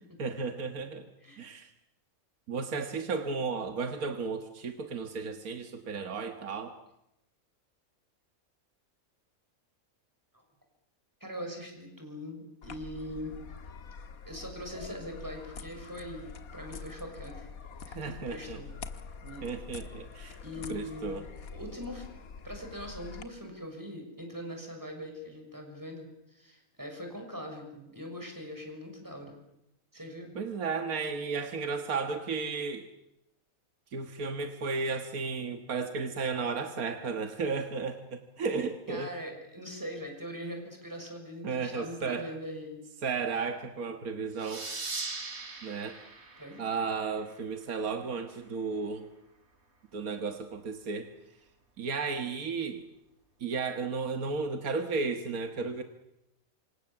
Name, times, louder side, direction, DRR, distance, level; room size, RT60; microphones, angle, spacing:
voice 1, 0.2-1.1 1.4-1.7 2.5-6.7 17.9-18.6 19.4-20.4 20.7-21.2 30.4-32.9 33.9-39.1 41.4-42.2 43.0-44.6 45.6-46.0 46.6-49.1 49.9-51.1 51.8-52.8 53.4-55.8, right 4 dB, 80° right, 6 dB, 2.0 m, -34 dB
voice 2, 11.2-13.3 14.2-17.5 18.0-18.7 19.2-19.5 20.4-22.1 22.4-29.4 29.9-30.3 38.9-42.8 46.4-46.6, equal, 15° right, 3 dB, 6.5 m, -42 dB
sound 1, 12.6-23.2, left 5 dB, 80° left, 1.8 m, -45 dB
sound 2, 44.4-47.6, right 3 dB, 50° right, 2.9 m, -40 dB
28.0 x 26.5 x 7.2 m, 0.86 s
omnidirectional pair, 1.5 m